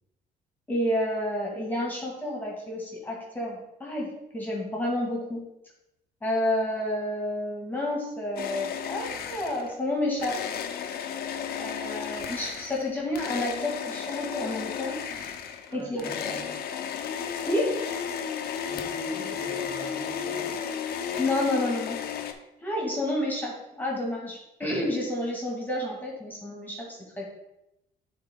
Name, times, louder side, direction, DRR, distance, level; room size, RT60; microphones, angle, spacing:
voice 1, 0.7-5.4 6.2-10.4 11.6-15.0 15.7-16.4 17.5-17.7 21.2-22.0 22.6-27.3, left 1 dB, 10° left, -3 dB, 2.1 m, -30 dB
sound 1, 8.4-9.8 10.2-22.3, left 8 dB, 65° left, 0.7 m, -33 dB
voice 2, 15.7-16.7 18.7-20.7, right 2 dB, 60° right, -4 dB, 2.8 m, -42 dB
9.3 x 4.0 x 3.7 m, 0.87 s
cardioid pair, 110°, 17 cm